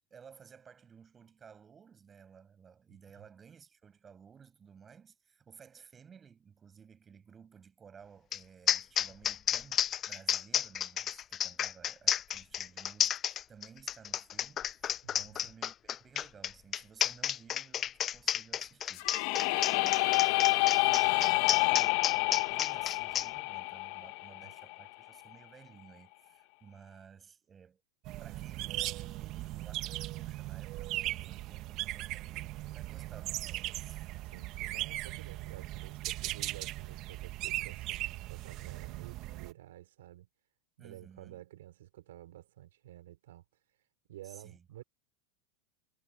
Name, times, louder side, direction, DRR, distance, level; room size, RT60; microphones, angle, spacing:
voice 1, 0.1-27.8 28.2-34.1 40.8-41.4 44.2-44.6, right 7 dB, 20° right, 6.3 m, -56 dB
sound 1, 8.3-8.4 8.7-23.3, left 10 dB, 30° left, 0.3 m, -31 dB
voice 2, 15.0-15.5 24.4-24.5 32.0-32.2 34.2-40.3 40.8-43.4 44.1-44.8, right 14 dB, 80° right, 5.0 m, -51 dB
sound 2, 19.0-24.8, left 24 dB, 60° left, 0.8 m, -28 dB
sound 3, 28.0-39.5, right 16 dB, 45° right, 1.1 m, -38 dB
supercardioid pair, 125°, 0 cm